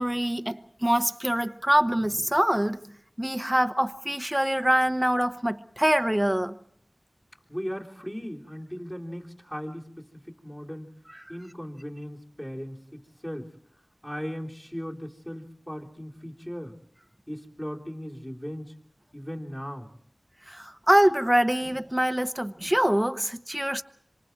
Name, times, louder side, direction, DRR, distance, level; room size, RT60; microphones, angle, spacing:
voice 1, 0.0-2.8 3.2-6.6 20.5-23.8, right 1 dB, 10° right, 0.9 m, -24 dB
voice 2, 7.5-10.9 11.3-13.5 14.0-16.8 17.3-18.7 19.1-19.9, equal, 15° left, 3.3 m, -37 dB
27.0 x 25.5 x 4.6 m
wide cardioid pair, 60°, 0 cm